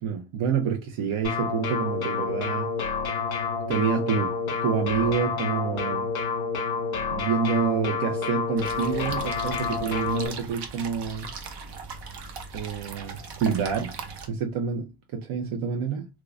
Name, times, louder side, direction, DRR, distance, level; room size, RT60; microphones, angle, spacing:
voice 1, 0.0-2.7 3.7-4.4 4.6-6.1 7.1-11.3 12.5-14.0 14.3-16.1, right 6 dB, 90° right, 0.7 m, -28 dB
sound 1, 1.2-10.3, left 5 dB, 50° left, 1.2 m, -29 dB
sound 2, 8.6-14.3, right 4 dB, 60° right, 0.8 m, -39 dB
3.6 x 3.0 x 2.3 m
cardioid pair, 175°, 46 cm